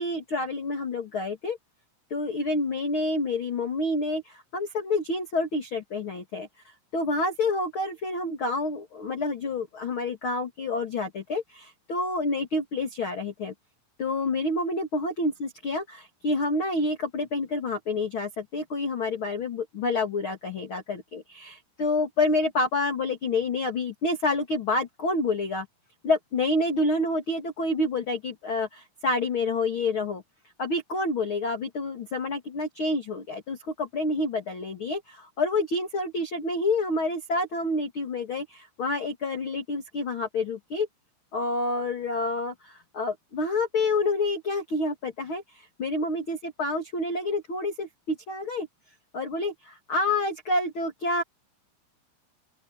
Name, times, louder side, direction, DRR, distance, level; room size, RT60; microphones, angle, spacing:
voice 1, 0.0-1.6 2.1-6.5 6.9-13.5 14.0-25.7 26.0-30.2 30.6-40.9 41.3-48.7 49.1-51.2, left 2 dB, 40° left, 2.3 m, -28 dB
open air
omnidirectional pair, 5.2 m